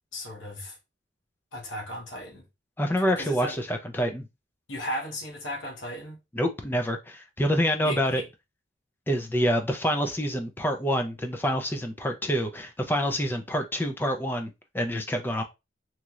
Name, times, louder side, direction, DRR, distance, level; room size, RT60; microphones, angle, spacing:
voice 1, 0.1-0.8 1.5-2.4 3.2-3.6 4.7-6.2 7.8-8.3, equal, 75° left, 0.9 m, -36 dB
voice 2, 2.8-4.3 6.3-8.2 9.1-15.4, equal, 10° left, 0.4 m, -27 dB
3.0 x 2.7 x 2.4 m
head